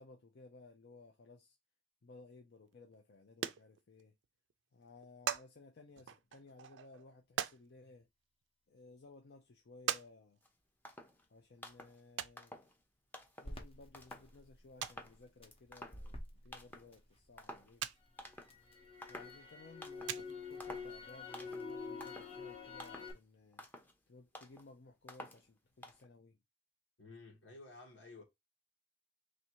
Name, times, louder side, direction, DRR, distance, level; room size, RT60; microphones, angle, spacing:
voice 1, 0.0-1.6 2.0-4.1 4.7-8.1 8.7-10.4 11.3-12.6 13.4-17.8 19.1-23.6 24.1-26.4, left 3 dB, 60° left, 0.6 m, -58 dB
sound 1, 2.9-3.0 3.3-4.3 4.5-4.6 4.8-5.5 6.0-7.6 8.4-8.5 9.0-9.1 9.9-10.1 10.4-10.5 12.2-12.4 13.5-13.7 14.0-14.1 14.4-14.5 14.8-15.1 16.5-16.6 17.0-17.1 17.8-18.0 18.3-18.4 19.6-19.7 20.0-20.5 21.4-21.5 21.7-21.8 22.0-22.1, right 9 dB, 75° right, 0.4 m, -40 dB
sound 2, 10.4-10.5 10.9-11.3 11.6-12.0 12.4-12.8 13.1-13.6 13.9-14.4 14.8-15.2 15.5-16.3 16.5-16.9 17.4-17.8 18.2-18.6 19.0-19.4 19.8-20.2 20.6-21.0 21.3-21.7 22.0-22.4 22.8-23.2 23.5-23.9 24.4-24.7 25.1-25.5 25.8-26.1, left 1 dB, 10° left, 0.6 m, -51 dB
Crackle, 13.4-17.6 18.0-23.1, left 4 dB, 30° left, 0.9 m, -48 dB
voice 2, 27.0-28.2, left 3 dB, 80° left, 1.5 m, -53 dB
3.2 x 2.6 x 4.5 m
head